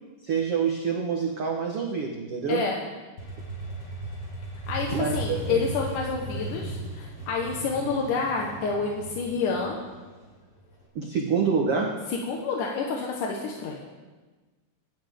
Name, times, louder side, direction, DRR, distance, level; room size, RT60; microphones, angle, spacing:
voice 1, 0.2-2.7 4.9-5.6 10.9-12.0, right 5 dB, 75° right, 0 dB, 1.3 m, -27 dB
voice 2, 2.5-2.8 4.7-9.8 12.1-13.8, left 4 dB, 65° left, 0 dB, 2.5 m, -28 dB
Motorcycle, 3.2-10.8, right 1 dB, 35° left, 4.3 m, -36 dB
25.0 x 11.5 x 3.6 m, 1.3 s
omnidirectional pair, 4.6 m